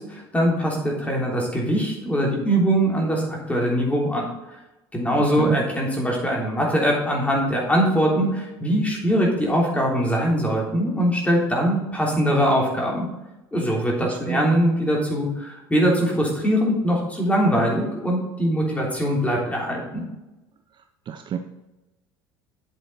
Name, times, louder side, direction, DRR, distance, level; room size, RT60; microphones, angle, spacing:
voice 1, 0.0-4.2 4.9-13.0 13.5-20.0, equal, 10° left, -2 dB, 3.3 m, -22 dB
voice 2, 5.2-5.6 14.0-14.6 21.1-21.4, right 9 dB, 35° right, 7 dB, 0.7 m, -29 dB
8.9 x 7.7 x 4.0 m, 1.0 s
figure-of-eight pair, 65°, 13 cm